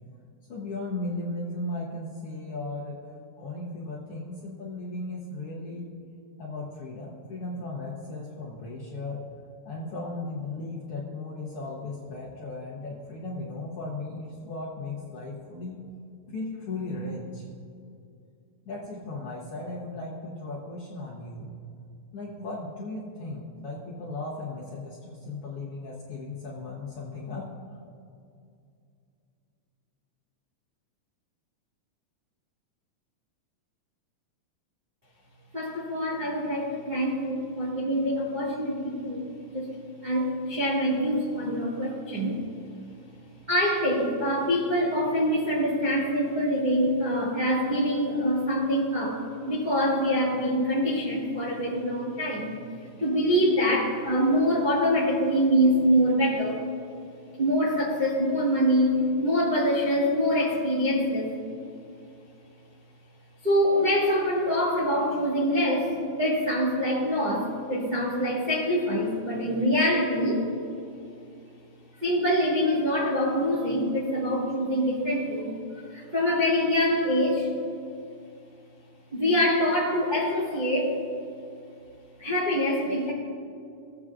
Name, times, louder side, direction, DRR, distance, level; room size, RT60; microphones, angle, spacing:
voice 1, 0.5-3.0 3.4-5.9 6.4-9.2 9.7-15.8 16.3-17.5 18.7-21.5 22.1-27.5, left 2 dB, 60° left, -5 dB, 1.7 m, -36 dB
voice 2, 35.5-39.7 40.0-42.4 43.5-52.6 53.0-56.6 57.4-61.3 63.4-70.4 72.0-75.5 75.9-77.5 79.1-81.0 82.2-83.1, equal, 25° right, -7 dB, 1.0 m, -25 dB
17.0 x 8.0 x 2.4 m, 2.5 s
omnidirectional pair, 3.4 m